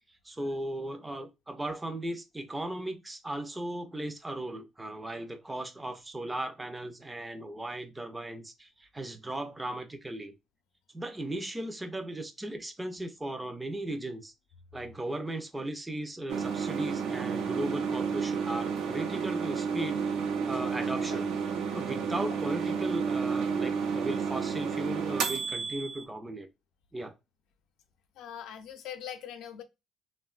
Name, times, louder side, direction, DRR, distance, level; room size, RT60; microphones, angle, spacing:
voice 1, 0.2-10.3 10.9-14.3 14.7-20.2 20.5-21.3 21.7-26.5 26.9-27.1, right 1 dB, 10° right, 0.4 m, -37 dB
sound 1, 16.3-26.0, right 6 dB, 80° right, 0.5 m, -31 dB
voice 2, 28.2-29.6, left 9 dB, 80° left, 0.5 m, -42 dB
3.4 x 2.2 x 2.3 m
cardioid pair, 125°, 0 cm